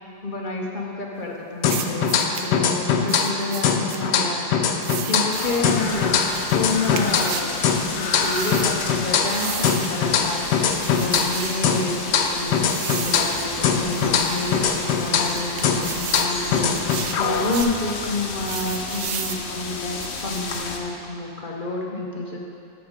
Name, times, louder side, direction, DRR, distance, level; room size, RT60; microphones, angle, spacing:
voice 1, 0.2-2.1 2.4-4.4 5.1-7.7 8.0-10.7 11.0-22.4, left 2 dB, 50° left, -1 dB, 0.6 m, -29 dB
sound 1, 1.6-3.4 3.6-7.4 7.6-11.4 11.6-15.4 15.6-17.6, left 6 dB, 70° left, 1.2 m, -22 dB
sound 2, 1.6-2.5 3.1-4.0 4.8-5.7 6.3-7.5 8.2-8.7 9.2-10.0 10.7-11.7 12.7-13.5 13.9-14.5 15.1-16.3 16.7-17.8 18.4-19.4 20.0-20.6, right 9 dB, 75° right, 0.8 m, -34 dB
sound 3, 5.3-20.8, left 4 dB, 90° left, 1.6 m, -32 dB
10.0 x 7.0 x 5.1 m, 2.6 s
omnidirectional pair, 2.0 m